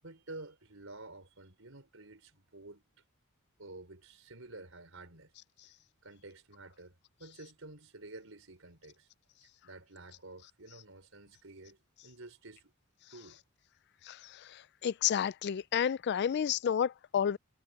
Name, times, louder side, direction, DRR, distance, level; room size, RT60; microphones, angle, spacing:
voice 1, 0.0-2.8 3.6-5.3 5.6-5.7 6.0-9.1 9.4-12.7 13.1-13.4, right 2 dB, 65° right, 5.3 m, -51 dB
voice 2, 14.8-17.4, left 8 dB, 50° left, 0.3 m, -30 dB
head